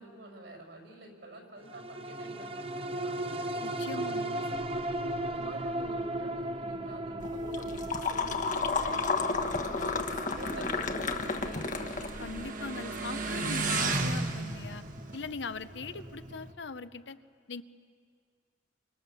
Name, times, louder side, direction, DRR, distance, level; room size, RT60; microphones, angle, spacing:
voice 1, 0.0-3.5 3.9-4.8 5.2-12.1 12.6-13.2 15.9-16.0, right 1 dB, 70° right, 2 dB, 5.7 m, -47 dB
sound 1, 1.7-16.4 16.8-16.9, right 1 dB, 30° right, 0.8 m, -38 dB
voice 2, 3.6-4.4 12.2-14.8 15.1-17.2 17.5-17.6, left 4 dB, 70° left, 12 dB, 0.8 m, -40 dB
sound 2, 7.2-12.5, left 4 dB, 45° left, 1.2 m, -32 dB
Motorcycle, 8.2-16.5, right 3 dB, 45° right, 1.6 m, -36 dB
29.0 x 26.0 x 7.0 m, 2.2 s
head